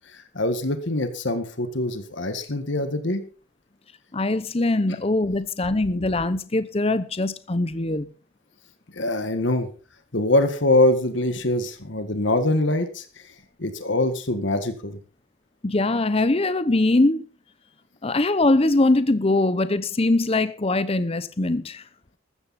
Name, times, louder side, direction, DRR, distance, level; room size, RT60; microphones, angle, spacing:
voice 1, 0.1-3.3 8.9-9.7 10.1-13.3 13.6-15.0, left 1 dB, 60° left, 1.7 m, -24 dB
voice 2, 4.1-8.1 15.6-17.2 18.0-21.8, left 2 dB, 30° left, 0.8 m, -22 dB
14.5 x 14.0 x 4.2 m
head